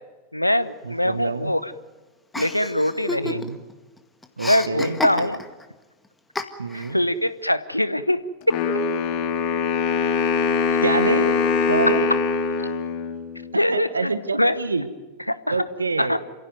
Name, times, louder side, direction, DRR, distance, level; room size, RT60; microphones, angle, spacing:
voice 1, 0.3-1.7 2.3-3.4 4.5-5.4 6.7-8.2 8.5-8.6 13.5-14.5 15.3-15.6 16.0-16.2, left 1 dB, 90° left, 15 dB, 1.0 m, -23 dB
voice 2, 0.8-1.5 3.2-3.6 4.4-5.0 6.6-7.0 10.8-11.4 11.7-12.1 13.7-14.9 15.5-16.2, right 4 dB, 75° right, 12 dB, 1.3 m, -26 dB
Chuckle chortle, 2.3-3.7 4.0-5.6 6.4-6.9, left 2 dB, 10° left, 1.8 m, -30 dB
Wind instrument woodwind instrument, 8.5-13.5, left 5 dB, 45° left, 2.7 m, -23 dB
28.5 x 16.0 x 9.5 m, 1.3 s
figure-of-eight pair, 90°, 0 cm